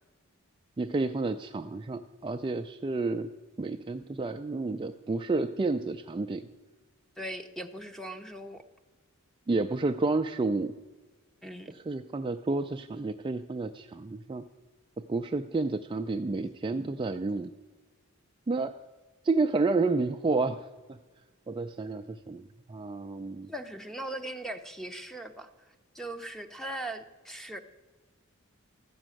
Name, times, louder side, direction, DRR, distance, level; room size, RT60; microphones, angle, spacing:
voice 1, 0.8-3.3 3.6-6.5 9.5-10.7 11.7-14.4 15.0-17.5 18.5-18.7 19.2-20.6 21.5-22.4 22.7-23.5, right 3 dB, 25° right, 6 dB, 0.3 m, -30 dB
voice 2, 7.2-8.6 11.4-11.7 23.5-27.6, right 1 dB, ahead, 7 dB, 0.8 m, -39 dB
14.0 x 6.2 x 9.0 m, 1.3 s
head